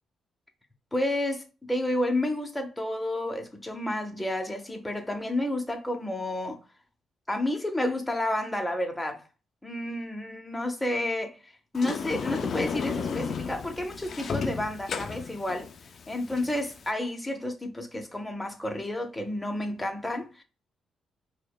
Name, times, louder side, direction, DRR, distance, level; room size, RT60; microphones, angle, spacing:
voice 1, 0.9-6.6 7.3-9.2 9.6-15.7 16.1-20.4, left 1 dB, 10° left, 0.7 m, -30 dB
Sliding door, 11.7-16.9, left 6 dB, 55° left, 0.4 m, -34 dB
4.6 x 2.1 x 2.3 m
cardioid pair, 95°, 0 cm